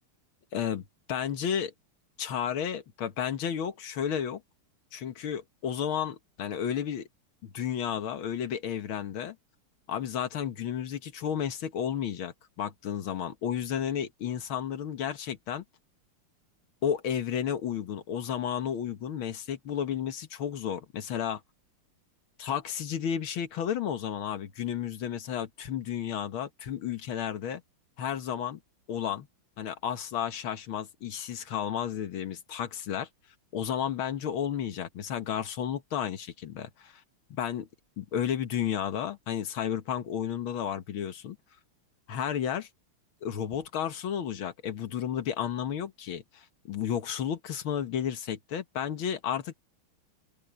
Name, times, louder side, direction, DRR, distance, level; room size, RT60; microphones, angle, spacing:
voice 1, 0.5-1.7 2.2-4.4 4.9-7.1 7.4-9.4 9.9-15.6 16.8-21.4 22.4-27.6 28.0-28.6 28.9-29.3 29.6-33.1 33.5-37.0 37.3-37.7 38.0-41.4 42.1-42.7 43.2-49.5, left 9 dB, 75° left, 2.1 m, -32 dB
open air
omnidirectional pair, 2.3 m